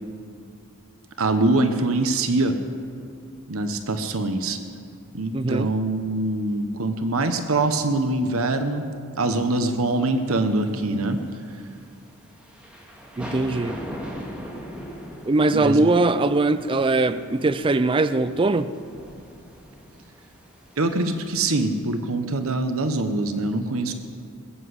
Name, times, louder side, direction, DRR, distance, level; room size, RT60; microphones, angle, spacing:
voice 1, 1.2-2.5 3.5-4.6 5.1-8.8 9.2-11.2 15.5-15.8 20.8-23.9, right 2 dB, 70° right, 8 dB, 1.0 m, -23 dB
voice 2, 5.3-5.7 13.2-13.8 15.2-18.7, right 2 dB, 25° right, 12 dB, 0.4 m, -21 dB
sound 1, 10.2-21.1, equal, 5° right, 2.1 m, -40 dB
21.0 x 8.0 x 8.0 m, 2.4 s
head